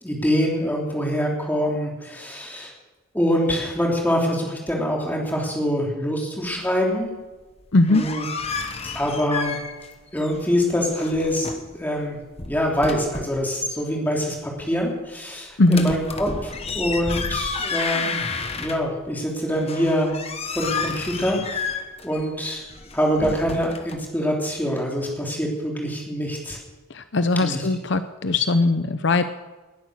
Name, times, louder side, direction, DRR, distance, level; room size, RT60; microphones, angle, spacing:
voice 1, 0.0-2.7 3.1-7.2 7.9-8.2 8.9-9.6 10.1-12.2 12.4-18.2 18.5-20.1 20.5-21.7 22.0-22.6 22.9-26.6 27.3-27.7, equal, 10° left, -1 dB, 3.3 m, -25 dB
voice 2, 7.7-8.0 15.6-15.9 26.9-29.2, left 2 dB, 55° left, 10 dB, 0.7 m, -20 dB
sound 1, 7.7-9.9 10.2-11.7 12.2-13.4 15.7-19.1 19.5-24.0, left 4 dB, 30° left, 1.2 m, -31 dB
20.5 x 10.5 x 6.6 m, 1.2 s
head